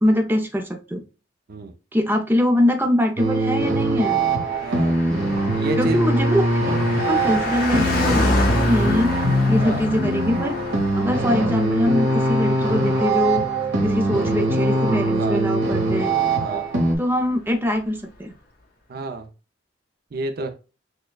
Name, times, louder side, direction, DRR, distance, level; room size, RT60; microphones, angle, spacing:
voice 1, 0.0-1.0 1.9-4.2 5.8-10.5 11.0-13.5 13.8-16.1 17.0-18.3, left 1 dB, 10° right, 4 dB, 0.5 m, -23 dB
sound 1, 3.2-17.0, right 2 dB, 85° right, 1.1 m, -22 dB
Car passing by, 4.4-16.3 16.5-16.6, left 2 dB, 55° left, 1.1 m, -30 dB
voice 2, 4.6-5.0 5.6-6.1 9.6-9.8 15.1-15.4 16.4-16.7 18.9-19.3 20.1-20.5, right 2 dB, 60° right, 6 dB, 0.5 m, -29 dB
sound 2, 6.9-16.1, left 1 dB, 20° left, 0.8 m, -38 dB
6.4 x 2.2 x 2.3 m, 0.33 s
head